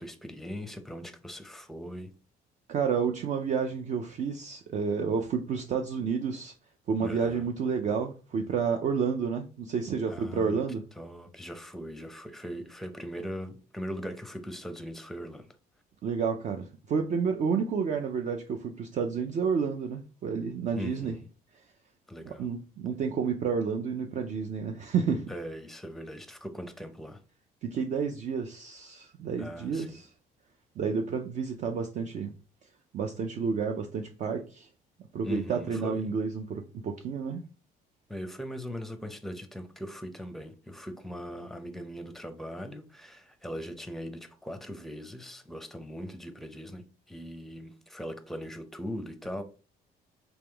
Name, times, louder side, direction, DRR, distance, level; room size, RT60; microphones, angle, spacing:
voice 1, 0.0-2.1 7.0-7.5 10.1-10.6 11.0-15.6 20.8-21.3 22.1-22.5 25.3-27.2 29.4-30.0 35.2-36.1 38.1-49.4, equal, ahead, 0.6 m, -40 dB
voice 2, 2.7-6.5 6.9-10.8 16.0-21.1 22.2-25.3 27.6-30.1 30.8-32.3 32.6-34.7 35.1-37.4, right 6 dB, 45° right, 0.4 m, -30 dB
3.5 x 3.0 x 3.3 m
cardioid pair, 110°, 17 cm